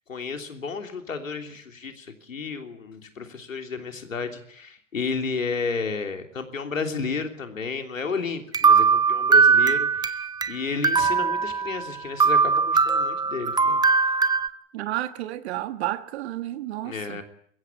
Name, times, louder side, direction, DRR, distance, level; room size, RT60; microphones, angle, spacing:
voice 1, 0.1-13.8 16.8-17.2, left 4 dB, 85° left, 3.3 m, -32 dB
sound 1, 8.5-10.5 10.8-11.9 12.2-14.5, right 5 dB, 10° right, 1.0 m, -20 dB
voice 2, 14.7-17.2, right 14 dB, 55° right, 1.4 m, -31 dB
22.0 x 16.0 x 10.0 m
figure-of-eight pair, 105°, 39 cm